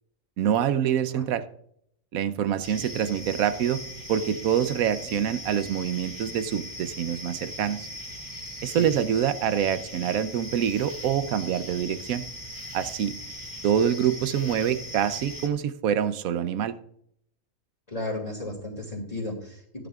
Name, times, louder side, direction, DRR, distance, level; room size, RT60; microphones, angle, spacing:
voice 1, 0.4-1.4 2.1-3.8 4.1-7.9 8.6-12.2 12.7-13.1 13.6-16.8, right 9 dB, 85° right, 12 dB, 1.1 m, -26 dB
sound 1, 2.6-15.5, equal, 15° right, 2.5 m, -39 dB
voice 2, 17.9-19.9, left 2 dB, 25° left, -3 dB, 2.5 m, -34 dB
15.5 x 11.0 x 2.4 m, 0.69 s
omnidirectional pair, 1.4 m